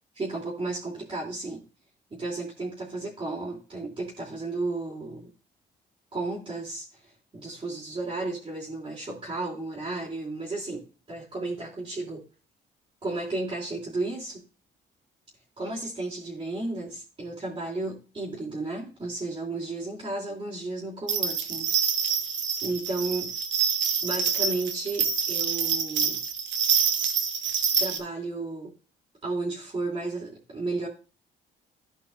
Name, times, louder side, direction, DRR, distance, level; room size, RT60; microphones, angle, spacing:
voice 1, 0.1-1.6 2.1-5.3 6.1-12.2 13.0-14.4 15.6-21.7 22.0-22.2 22.6-23.3 24.0-26.2 27.8-28.7 29.2-30.9, right 2 dB, 25° right, -7 dB, 2.8 m, -33 dB
sound 1, 21.1-28.0, right 7 dB, 70° right, 1.3 m, -26 dB
14.0 x 5.3 x 2.4 m, 0.34 s
cardioid pair, 90°, 20 cm